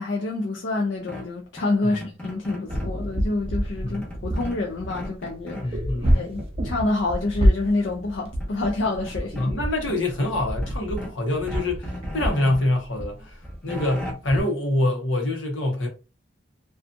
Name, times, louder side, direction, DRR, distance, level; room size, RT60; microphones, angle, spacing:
voice 1, 0.0-5.8 6.1-9.5, left 2 dB, 70° left, 0.4 m, -27 dB
sound 1, 1.1-3.0 3.9-5.7 6.0-6.5 7.8-7.9 8.2-9.5 9.9-11.2 11.5-12.7 13.2-14.1, left 1 dB, 5° left, 0.8 m, -38 dB
sound 2, 2.7-14.4, equal, 30° right, 0.5 m, -27 dB
voice 2, 5.6-6.2 9.4-15.9, left 1 dB, 90° left, 0.8 m, -25 dB
2.5 x 2.4 x 2.5 m
head